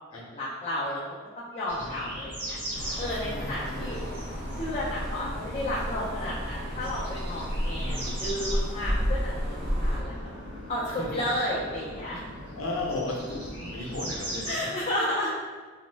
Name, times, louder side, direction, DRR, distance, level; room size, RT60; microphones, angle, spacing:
voice 1, 0.1-1.0 1.4-2.6 3.0-4.0 4.6-10.4 10.7-12.2 14.5-15.3, left 1 dB, 30° left, -7 dB, 0.4 m, -32 dB
sound 1, 1.7-14.5, equal, 30° right, 1.3 m, -39 dB
voice 2, 1.8-2.2 3.2-4.2 7.8-8.2 10.9-11.2 12.6-14.7, left 2 dB, 90° left, 0 dB, 0.6 m, -36 dB
sound 2, 2.7-10.0, equal, 55° right, 0.7 m, -32 dB
3.0 x 2.0 x 3.3 m, 1.4 s
head